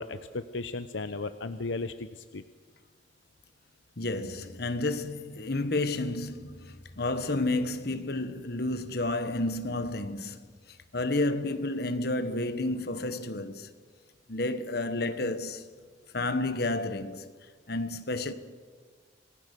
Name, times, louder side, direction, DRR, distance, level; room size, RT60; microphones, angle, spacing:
voice 1, 0.0-2.4, left 3 dB, 75° left, 0.8 m, -35 dB
voice 2, 4.0-10.4 10.7-13.7 14.3-15.7 16.1-17.3 17.7-18.3, left 2 dB, 55° left, 1.3 m, -31 dB
27.0 x 19.5 x 6.8 m
head